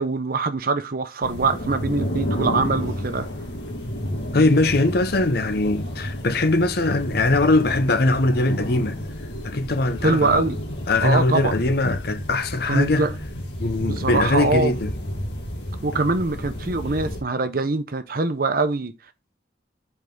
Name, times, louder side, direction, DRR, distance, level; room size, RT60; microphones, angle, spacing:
voice 1, 0.0-3.3 10.0-10.6 11.0-11.5 12.7-13.1 13.8-14.7 15.8-18.9, right 3 dB, 55° right, 0.8 m, -23 dB
sound 1, 1.2-17.2, equal, 80° left, 2.0 m, -31 dB
voice 2, 4.3-9.0 9.4-10.4 10.9-13.1 13.6-14.9, left 2 dB, 60° left, 0.8 m, -21 dB
5.4 x 4.7 x 3.8 m
head